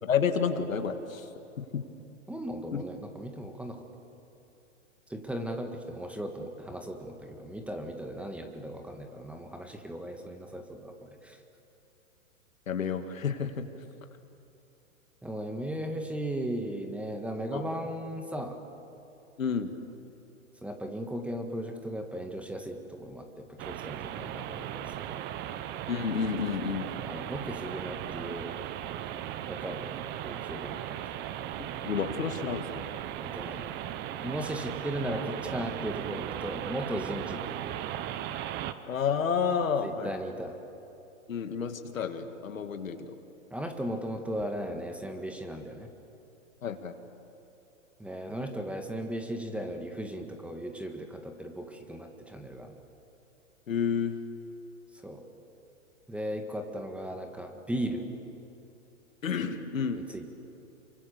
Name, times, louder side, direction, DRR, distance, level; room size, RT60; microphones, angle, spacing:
voice 1, 0.0-1.3 1.6-1.8 2.7-2.8 12.7-13.7 17.5-17.6 19.4-19.7 25.9-26.9 31.6-32.9 38.9-40.1 41.3-43.1 46.6-46.9 53.7-54.1 59.2-60.0, left 6 dB, 80° left, 7 dB, 2.3 m, -30 dB
voice 2, 2.3-3.9 5.1-11.4 15.2-18.6 20.6-25.3 27.0-28.5 29.5-29.9 30.2-31.0 33.2-33.7 34.2-37.4 39.8-40.6 43.5-45.9 48.0-52.8 55.0-55.2 56.1-58.0 59.9-60.3, right 1 dB, 5° right, 4 dB, 1.8 m, -37 dB
sound 1, 23.6-38.7, right 11 dB, 25° right, 1.0 m, -37 dB
29.0 x 24.0 x 6.9 m, 2.9 s
hypercardioid pair, 130°, 40 cm